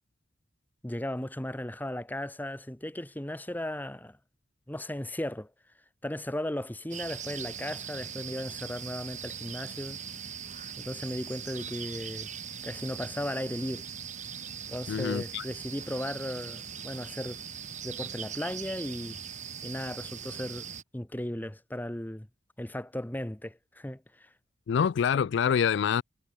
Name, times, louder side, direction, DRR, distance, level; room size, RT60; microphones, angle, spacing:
voice 1, 0.8-4.2 4.7-5.5 6.0-10.0 10.8-12.3 12.6-13.9 14.7-17.4 17.8-19.2 19.6-20.7 20.9-22.3 22.6-24.3, left 1 dB, 10° left, 1.0 m, -36 dB
sound 1, 6.9-20.8, right 7 dB, 40° right, 5.8 m, -40 dB
voice 2, 14.9-15.4 24.7-26.0, left 7 dB, 65° left, 0.3 m, -26 dB
head